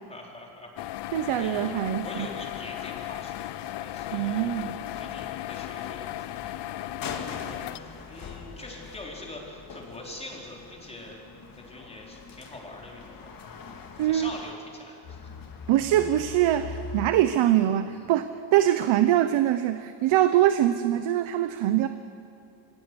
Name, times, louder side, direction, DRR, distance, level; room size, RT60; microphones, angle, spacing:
voice 1, 0.1-0.7 1.0-1.7 2.0-3.4 3.8-6.6 7.0-11.2 11.5-13.3 14.0-15.3 18.0-18.1, left 1 dB, 15° left, -2 dB, 4.1 m, -44 dB
sound 1, 0.8-7.8, left 14 dB, 60° left, 0.6 m, -36 dB
voice 2, 1.1-2.3 4.1-4.8 14.0-14.3 15.7-21.9, right 12 dB, 75° right, 10 dB, 1.0 m, -23 dB
sound 2, 1.8-14.5 15.0-17.1, left 5 dB, 45° left, 2.2 m, -43 dB
24.5 x 17.0 x 9.8 m, 2.6 s
cardioid pair, 165°, 48 cm